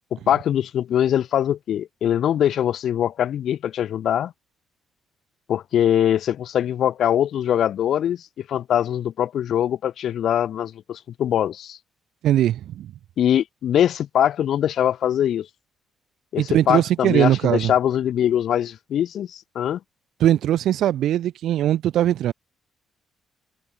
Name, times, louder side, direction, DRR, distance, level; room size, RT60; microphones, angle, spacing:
voice 1, 0.1-4.3 5.5-8.2 8.5-11.8 13.2-15.5 16.3-19.8, left 10 dB, 70° left, 2.4 m, -22 dB
voice 2, 12.2-12.9 16.4-17.7 20.2-22.3, right 12 dB, 75° right, 1.6 m, -20 dB
cardioid pair, 90°, 0 cm